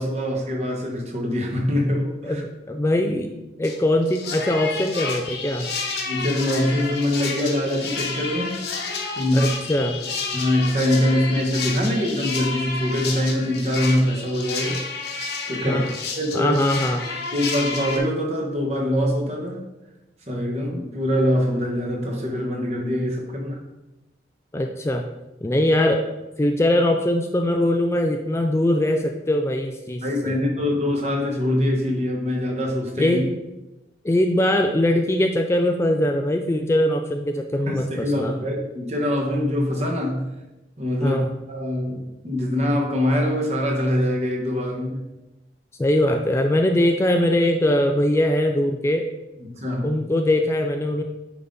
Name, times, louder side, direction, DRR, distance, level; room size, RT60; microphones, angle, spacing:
voice 1, 0.0-2.4 6.0-8.6 8.8-9.5 10.3-14.8 15.2-15.9 16.2-16.6 17.3-19.6 20.3-23.6 30.0-33.2 37.7-40.2 40.8-45.0 49.4-49.9, left 1 dB, 40° right, 0 dB, 1.3 m, -24 dB
voice 2, 2.2-3.3 3.6-5.7 9.3-10.0 15.7-15.9 16.3-17.0 24.5-25.1 25.4-26.0 26.4-30.4 33.0-33.3 34.0-38.3 41.0-41.3 45.8-49.1 49.8-51.0, left 1 dB, 15° left, 4 dB, 0.3 m, -21 dB
sound 1, 3.6-3.8 4.1-18.0, left 4 dB, 75° left, 1.2 m, -30 dB
9.2 x 4.0 x 3.8 m, 0.99 s
head